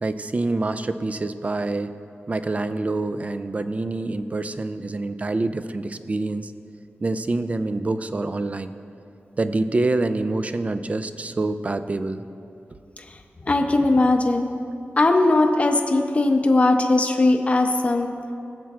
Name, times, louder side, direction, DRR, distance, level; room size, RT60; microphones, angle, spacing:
voice 1, 0.0-1.9 2.3-6.5 7.0-8.7 9.4-12.2, right 2 dB, 35° right, 11 dB, 0.3 m, -26 dB
voice 2, 13.5-14.5 15.0-18.1, left 2 dB, 30° left, 4 dB, 0.6 m, -19 dB
18.5 x 7.3 x 2.4 m, 2.6 s
wide cardioid pair, 125°, 4 cm